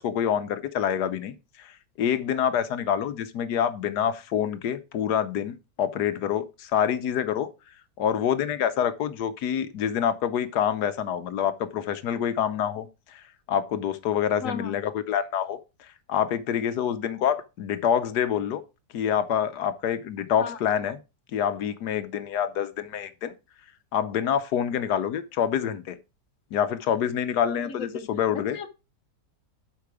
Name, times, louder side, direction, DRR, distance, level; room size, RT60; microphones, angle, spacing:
voice 1, 0.0-1.3 1.6-7.5 8.0-15.6 16.1-18.6 18.9-21.0 21.3-23.3 23.9-26.0 26.5-28.6, left 9 dB, 70° left, 1.3 m, -26 dB
voice 2, 14.4-14.7 20.4-20.6 27.7-28.1 28.5-28.7, left 5 dB, 55° left, 1.2 m, -35 dB
8.4 x 5.7 x 4.7 m
omnidirectional pair, 1.8 m